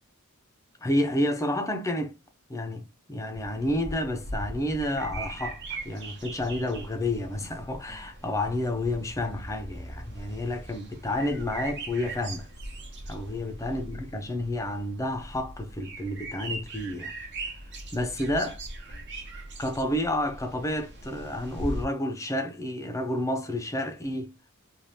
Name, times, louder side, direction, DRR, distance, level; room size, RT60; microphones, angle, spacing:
voice 1, 0.8-2.2 2.5-2.8 3.1-12.5 13.1-17.1 17.9-18.6 19.6-24.3, left 1 dB, 15° left, 0.5 m, -30 dB
sound 1, 3.3-21.9, right 2 dB, 55° right, 0.9 m, -40 dB
3.3 x 2.3 x 2.6 m
head